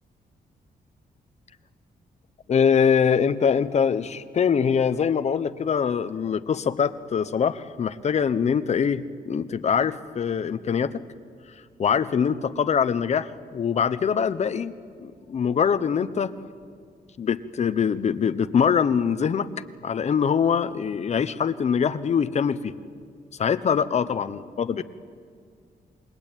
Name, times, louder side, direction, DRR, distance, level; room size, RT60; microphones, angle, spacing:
voice 1, 2.5-11.0 11.8-14.7 15.0-16.4 17.2-19.5 19.8-22.7 23.4-24.8, left 7 dB, 45° left, 12 dB, 0.9 m, -23 dB
28.0 x 21.5 x 9.1 m, 2.1 s
wide cardioid pair, 160°, 16 cm